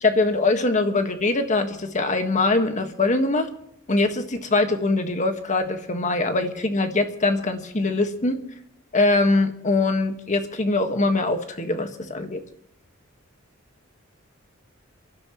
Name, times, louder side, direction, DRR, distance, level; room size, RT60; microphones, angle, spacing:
voice 1, 0.0-3.5 3.9-8.4 8.9-12.4, left 2 dB, 35° left, 6 dB, 1.6 m, -22 dB
28.0 x 12.5 x 3.1 m, 0.79 s
head